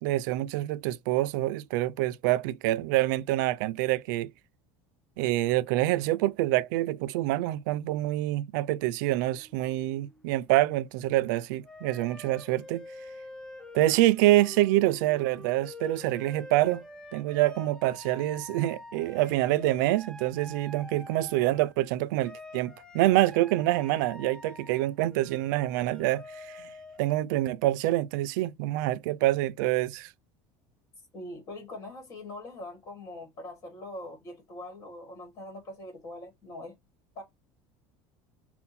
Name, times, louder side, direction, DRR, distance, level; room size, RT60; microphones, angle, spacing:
voice 1, 0.0-4.3 5.2-12.8 13.7-16.8 17.1-26.7 27.0-30.1, right 16 dB, 85° right, 0.4 m, -26 dB
sound 1, 9.2-10.4 11.6-21.9 22.2-27.2, left 2 dB, 5° left, 0.5 m, -47 dB
voice 2, 31.1-36.7 37.1-37.2, left 1 dB, 25° left, 1.3 m, -42 dB
5.5 x 2.2 x 4.2 m
cardioid pair, 180°, 10 cm